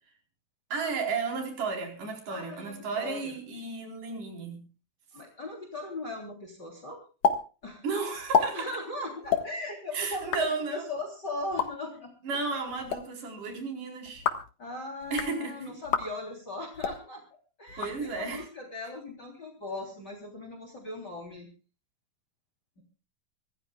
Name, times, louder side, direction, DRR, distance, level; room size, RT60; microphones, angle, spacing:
voice 1, 0.7-4.6 7.8-8.7 9.9-10.9 12.2-14.2 15.1-15.8 17.8-18.5, right 4 dB, 60° right, 3 dB, 5.7 m, -33 dB
voice 2, 2.3-3.3 5.1-7.0 7.6-7.8 8.4-12.1 14.6-17.2 17.6-21.5, left 2 dB, 30° left, 3 dB, 3.8 m, -38 dB
sound 1, 7.2-7.4 7.6-7.7 8.2-8.5 9.2-9.4 10.1-10.4 11.4-11.7 12.7-13.0 14.1-14.5 15.0-15.3 15.8-16.1 16.7-17.0 17.7-18.4, left 6 dB, 55° left, 2.5 m, -28 dB
25.5 x 16.0 x 2.4 m, 0.35 s
omnidirectional pair, 4.2 m